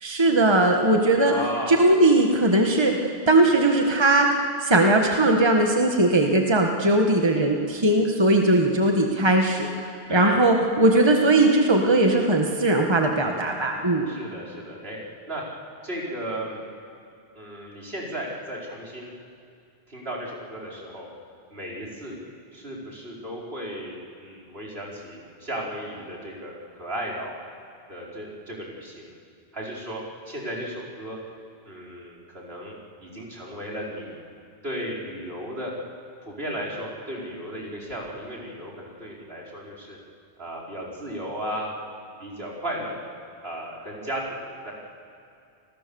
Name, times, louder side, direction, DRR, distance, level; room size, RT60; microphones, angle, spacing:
voice 1, 0.0-1.3 1.7-9.7 10.1-14.1, right 2 dB, 25° right, 2 dB, 1.6 m, -19 dB
voice 2, 1.3-1.9 10.1-10.4 14.1-15.0 15.3-15.4 15.8-16.6 17.3-19.1 19.9-21.1 21.5-22.2 22.5-27.4 27.9-29.1 29.5-30.0 30.3-31.2 31.6-32.7 33.0-34.2 34.6-35.7 36.2-40.0 40.4-41.7 42.2-43.1 43.4-44.7, equal, 70° right, -3 dB, 5.0 m, -35 dB
29.5 x 20.5 x 7.1 m, 2.4 s
omnidirectional pair, 1.0 m